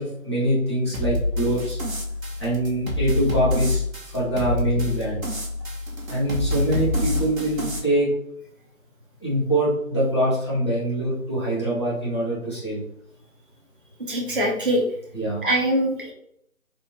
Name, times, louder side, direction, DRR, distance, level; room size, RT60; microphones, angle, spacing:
voice 1, 0.0-1.8 2.4-5.4 6.1-8.1 9.2-12.8 15.1-15.4, right 1 dB, 20° left, -10 dB, 1.0 m, -24 dB
sound 1, 0.9-7.8, left 2 dB, 75° right, 1.2 m, -27 dB
voice 2, 14.0-14.8 15.4-16.1, right 1 dB, 40° right, -2 dB, 0.7 m, -23 dB
4.1 x 2.1 x 3.4 m, 0.72 s
figure-of-eight pair, 165°, 42 cm